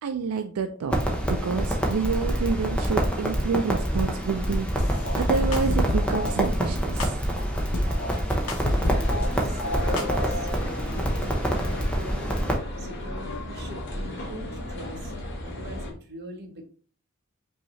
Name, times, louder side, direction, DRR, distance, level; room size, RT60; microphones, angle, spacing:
voice 1, 0.0-7.2, right 5 dB, 80° right, 7 dB, 0.4 m, -28 dB
Crackle, 0.9-12.6, equal, 5° left, 0.7 m, -27 dB
sound 1, 4.8-6.3 7.0-9.3 9.6-10.6, left 1 dB, 85° left, 0.9 m, -29 dB
sound 2, 8.6-15.9, left 1 dB, 55° left, 1.1 m, -35 dB
voice 2, 8.8-12.4 12.8-15.1 15.4-16.6, right 1 dB, 50° right, 3 dB, 0.9 m, -42 dB
5.4 x 2.7 x 3.1 m, 0.42 s
head